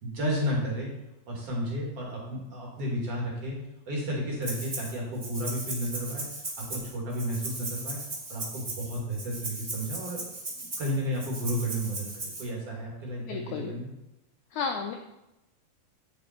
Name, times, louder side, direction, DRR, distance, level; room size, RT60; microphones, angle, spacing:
voice 1, 0.0-0.9 1.3-3.6 3.9-6.3 6.7-8.0 8.3-10.2 10.5-13.9, equal, 45° right, -3 dB, 3.0 m, -32 dB
Rattle (instrument), 4.4-4.9 5.2-12.4, right 2 dB, 20° right, 1.5 m, -37 dB
voice 2, 13.2-13.7 14.5-14.9, left 5 dB, 80° left, 4 dB, 1.8 m, -32 dB
9.7 x 6.9 x 4.5 m, 0.93 s
omnidirectional pair, 4.2 m